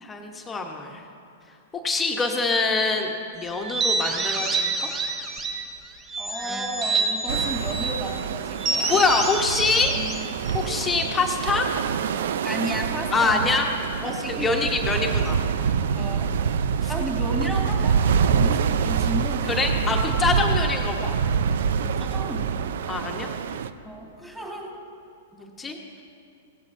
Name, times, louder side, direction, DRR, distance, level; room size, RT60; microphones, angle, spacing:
voice 1, 0.0-1.0 1.8-4.9 8.9-9.9 10.5-11.7 13.1-13.7 14.0-15.4 16.8-16.9 19.5-21.2 22.9-23.3 25.3-25.8, left 4 dB, 15° left, 2 dB, 1.1 m, -25 dB
sound 1, 3.6-5.7 6.1-8.0 8.6-11.1, right 3 dB, 25° right, 1.1 m, -27 dB
voice 2, 6.2-9.0 12.4-13.6 14.0-14.7 15.0-15.2 15.9-16.3 16.9-19.9 21.8-22.8 23.9-24.7, equal, 5° right, -1 dB, 2.1 m, -33 dB
sound 2, 7.3-23.7, right 7 dB, 70° right, 0.4 m, -26 dB
16.5 x 15.0 x 2.7 m, 2.6 s
hypercardioid pair, 120°, 0 cm